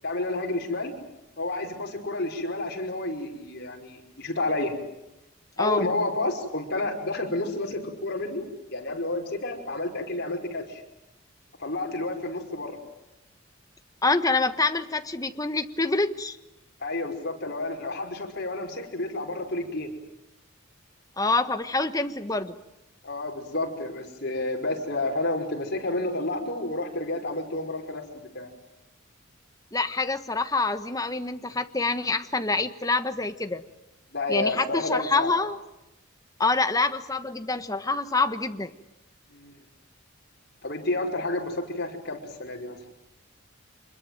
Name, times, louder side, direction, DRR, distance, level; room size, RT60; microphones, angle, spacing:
voice 1, 0.0-0.9 1.4-4.8 5.6-8.4 8.7-10.8 11.6-12.8 16.8-19.9 23.0-28.5 34.1-35.3 39.3-39.5 40.6-42.8, left 2 dB, 50° left, 2 dB, 5.4 m, -30 dB
voice 2, 14.0-16.4 21.2-22.6 29.7-33.6 34.3-35.6 36.4-38.7, left 3 dB, 15° left, 9 dB, 1.3 m, -26 dB
26.5 x 21.5 x 9.3 m, 0.93 s
head